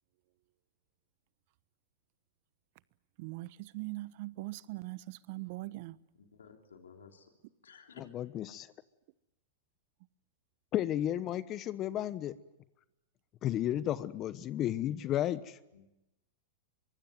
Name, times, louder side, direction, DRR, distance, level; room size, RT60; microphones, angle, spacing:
voice 1, 3.2-6.0, right 20 dB, 55° right, 17 dB, 1.1 m, -41 dB
voice 2, 6.2-7.3 7.6-8.0 15.7-15.9, left 6 dB, 85° left, 4 dB, 3.3 m, -55 dB
voice 3, 8.0-8.7 10.7-12.4 13.4-15.6, left 12 dB, 35° left, 15 dB, 1.1 m, -33 dB
24.0 x 23.5 x 9.3 m, 0.92 s
hypercardioid pair, 110°, 0 cm